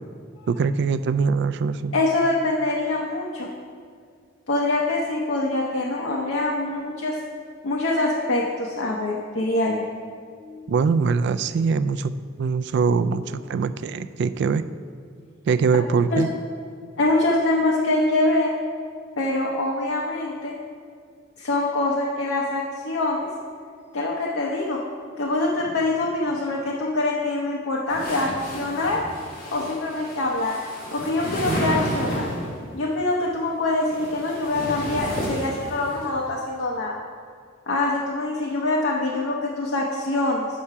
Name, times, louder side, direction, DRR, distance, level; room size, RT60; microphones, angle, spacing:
voice 1, 0.5-1.9 10.7-14.6 15.5-16.3, right 5 dB, 60° right, 13 dB, 0.3 m, -22 dB
voice 2, 1.9-3.5 4.5-7.2 7.6-9.9 10.3-10.7 16.1-16.2 17.0-18.5 19.2-20.5 21.4-23.3 23.9-24.8 25.2-29.0 29.5-30.5 30.9-32.3 32.7-37.0 37.7-40.5, left 2 dB, 75° left, -2 dB, 0.7 m, -24 dB
sound 1, 27.9-32.6 33.6-36.1, equal, 50° left, 2.1 m, -31 dB
8.5 x 5.5 x 4.8 m, 2.2 s
head